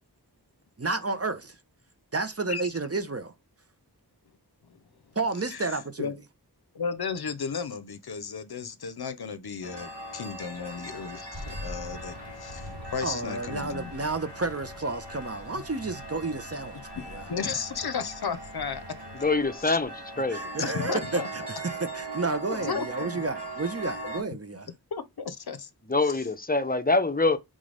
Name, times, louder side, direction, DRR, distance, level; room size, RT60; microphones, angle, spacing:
voice 1, 0.8-1.6 2.1-3.3 5.2-6.1 13.0-17.3 20.3-24.7, right 3 dB, 35° right, 0.7 m, -31 dB
voice 2, 6.7-13.9 17.0-19.2 19.6-19.8 20.6-21.3 22.5-23.2 24.0-24.1 24.9-25.7 26.0-26.2, left 6 dB, 65° left, 0.6 m, -34 dB
sound 1, 9.6-24.2, right 2 dB, 85° right, 1.5 m, -40 dB
Thunder, 11.3-19.9, left 1 dB, 65° right, 2.7 m, -45 dB
voice 3, 19.2-20.4 25.9-27.4, left 3 dB, 20° left, 0.6 m, -25 dB
3.9 x 3.7 x 3.3 m
wide cardioid pair, 45°, 40 cm